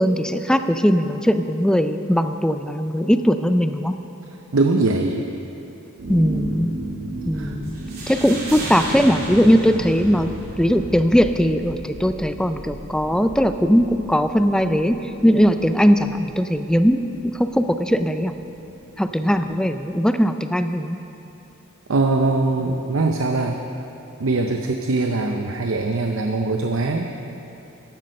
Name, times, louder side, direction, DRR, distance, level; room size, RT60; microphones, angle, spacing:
voice 1, 0.0-3.9 6.1-6.7 7.3-7.8 8.1-10.3 10.6-15.0 15.2-18.3 19.0-21.0, equal, 5° left, 9 dB, 0.4 m, -19 dB
voice 2, 4.5-5.3 7.3-7.5 21.9-23.6 24.2-27.1, right 3 dB, 70° right, 4 dB, 0.7 m, -21 dB
sound 1, 6.0-19.6, right 1 dB, 85° right, 2.1 m, -35 dB
sound 2, 7.6-10.7, right 2 dB, 45° right, 3.2 m, -34 dB
14.0 x 11.0 x 5.4 m, 3.0 s
head